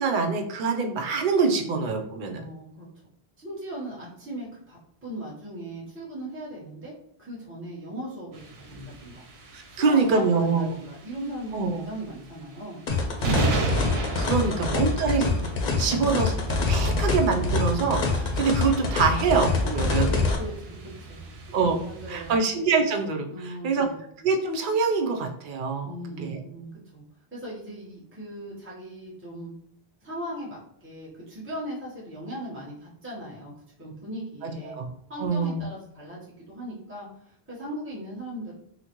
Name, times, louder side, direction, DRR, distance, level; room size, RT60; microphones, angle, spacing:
voice 1, 0.0-2.4 9.5-10.7 11.5-11.8 14.2-15.3 15.8-16.4 16.7-20.1 21.5-21.8 22.1-23.9 24.2-25.9 26.2-26.4 34.4-34.9 35.2-35.6, right 4 dB, 60° right, 4 dB, 0.6 m, -25 dB
voice 2, 2.3-2.9 3.4-6.9 7.2-9.2 9.7-12.8 14.1-14.6 15.8-16.1 19.9-21.2 21.8-22.4 23.3-24.0 25.8-27.0 27.3-29.5 30.0-33.5 33.8-34.8 35.1-36.2 36.5-38.5, right 1 dB, 15° right, -7 dB, 0.9 m, -38 dB
sound 1, 8.3-22.4, right 2 dB, 85° right, 0.9 m, -34 dB
sound 2, 12.9-20.4, left 4 dB, 55° left, 0.6 m, -25 dB
3.8 x 2.1 x 2.9 m, 0.67 s
omnidirectional pair, 1.0 m